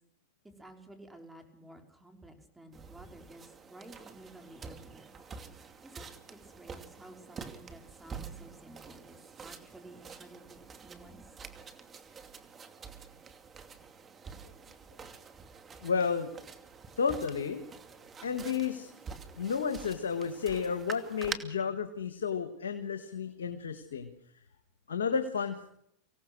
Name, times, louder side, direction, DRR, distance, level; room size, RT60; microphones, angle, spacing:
voice 1, 0.6-5.1 5.8-6.1 6.4-11.2, right 1 dB, 10° right, 4 dB, 5.0 m, -53 dB
sound 1, 2.7-21.4, right 5 dB, 25° right, 2.5 m, -47 dB
voice 2, 15.8-16.3 17.0-17.6 18.2-18.9 19.4-24.1 24.9-25.7, left 6 dB, 85° left, 7 dB, 1.7 m, -32 dB
25.0 x 17.5 x 6.3 m, 0.71 s
hypercardioid pair, 100°, 0 cm